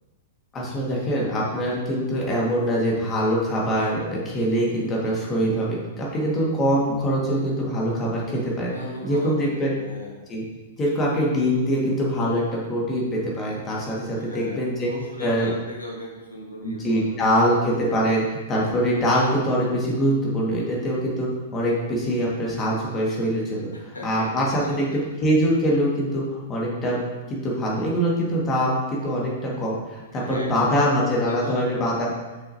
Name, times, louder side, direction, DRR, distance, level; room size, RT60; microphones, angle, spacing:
voice 1, 0.5-8.7 9.0-9.7 10.3-10.4 10.8-14.9 15.2-15.5 16.6-27.0 27.3-32.1, equal, 25° left, -4 dB, 1.9 m, -23 dB
voice 2, 8.7-10.3 14.1-17.8 23.7-25.0 30.1-31.7, left 1 dB, 85° left, -2 dB, 1.6 m, -38 dB
6.6 x 5.6 x 2.8 m, 1.2 s
figure-of-eight pair, 105°, 0 cm